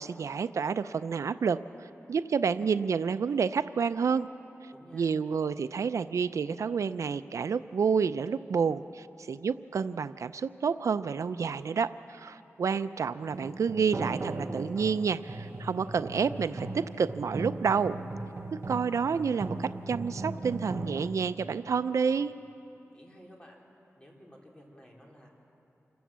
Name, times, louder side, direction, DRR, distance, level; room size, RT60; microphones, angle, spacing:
voice 1, 0.0-4.3 4.9-18.0 18.5-22.3, right 6 dB, 90° right, 13 dB, 0.4 m, -29 dB
voice 2, 4.7-5.1 22.9-23.6 24.0-25.3, equal, 20° left, -1 dB, 3.4 m, -53 dB
sound 1, 13.3-21.1, right 2 dB, 50° right, 1.0 m, -38 dB
26.5 x 14.0 x 7.4 m, 2.9 s
wide cardioid pair, 100°, 5 cm